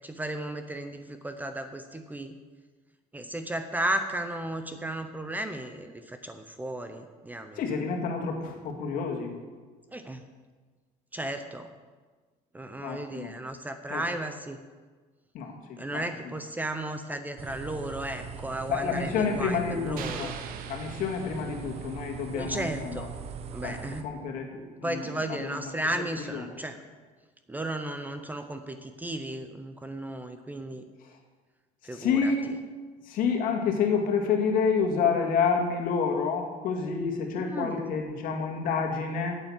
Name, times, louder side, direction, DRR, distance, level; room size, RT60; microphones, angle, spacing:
voice 1, 0.0-2.4 3.1-7.6 9.9-10.2 11.1-11.7 12.5-14.6 15.8-20.3 22.3-23.1 23.5-24.1 24.8-26.8 27.5-30.8 31.8-32.3 37.4-37.9, right 1 dB, 10° right, 8 dB, 0.6 m, -34 dB
voice 2, 7.6-9.3 12.8-13.3 13.9-14.0 15.3-16.3 18.7-20.3 20.7-23.1 23.6-23.8 24.0-25.7 26.3-26.4 31.0-31.2 31.9-32.6 33.0-39.4, left 5 dB, 60° left, 2 dB, 2.0 m, -29 dB
sound 1, 17.4-24.0, right 7 dB, 40° right, 0.8 m, -41 dB
sound 2, 20.0-22.1, right 7 dB, 65° right, 1.0 m, -42 dB
9.0 x 8.2 x 7.2 m, 1.4 s
cardioid pair, 130°, 16 cm